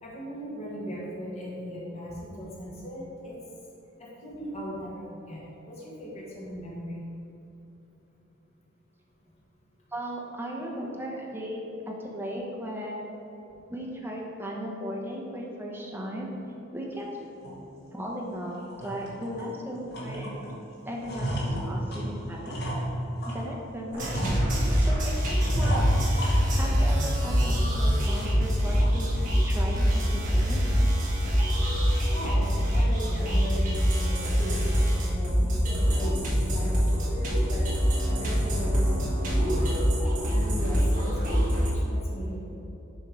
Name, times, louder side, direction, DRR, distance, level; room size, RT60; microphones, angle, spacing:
voice 1, 0.0-3.4 4.0-7.0 32.1-37.7 38.1-39.8 40.3-42.6, equal, 30° left, -6 dB, 1.3 m, -38 dB
voice 2, 9.9-13.1 13.7-16.3 16.7-17.1 17.9-20.4 20.8-22.7 23.3-25.9 26.6-30.6, equal, 10° right, -2 dB, 0.9 m, -36 dB
sound 1, 17.4-17.6 18.1-18.2 18.6-19.5 19.9-20.5 20.8-23.5 23.9-24.9 25.4-26.9 27.2-27.8 28.2-28.3 28.8-29.1, equal, 50° left, 1.3 m, -31 dB
sound 2, 23.9-41.7, equal, 40° right, 1.4 m, -24 dB
6.6 x 4.6 x 4.8 m, 2.9 s
head